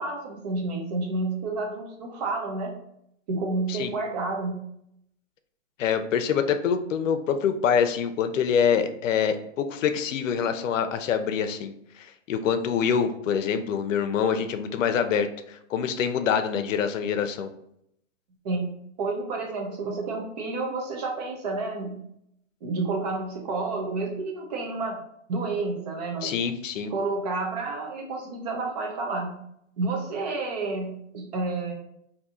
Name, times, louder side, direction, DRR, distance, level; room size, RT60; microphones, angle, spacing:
voice 1, 0.0-2.8 3.3-4.6 18.4-22.0 22.6-25.0 25.3-26.3 26.9-29.4 29.8-31.7, right 3 dB, 35° right, 1 dB, 0.5 m, -30 dB
voice 2, 5.8-17.5 26.2-26.9, left 7 dB, 85° left, 9 dB, 0.6 m, -25 dB
2.7 x 2.7 x 3.6 m, 0.74 s
hypercardioid pair, 160°, 38 cm